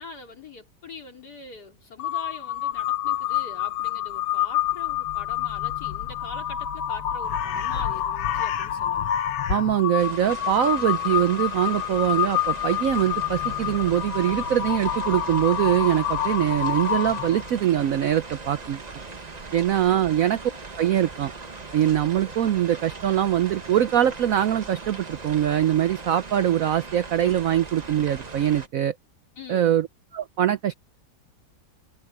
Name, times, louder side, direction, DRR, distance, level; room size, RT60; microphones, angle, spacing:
voice 1, 0.0-9.1 19.9-20.1 29.4-29.7, left 4 dB, 55° left, 3.8 m, -43 dB
Crow, 2.0-17.5, left 11 dB, 80° left, 1.8 m, -28 dB
voice 2, 9.5-18.8 19.5-20.4 20.8-21.3 21.7-28.9 29.5-29.9 30.1-30.7, right 11 dB, 70° right, 0.8 m, -23 dB
sound 1, 10.0-28.7, right 3 dB, 25° right, 1.0 m, -40 dB
omnidirectional pair, 2.1 m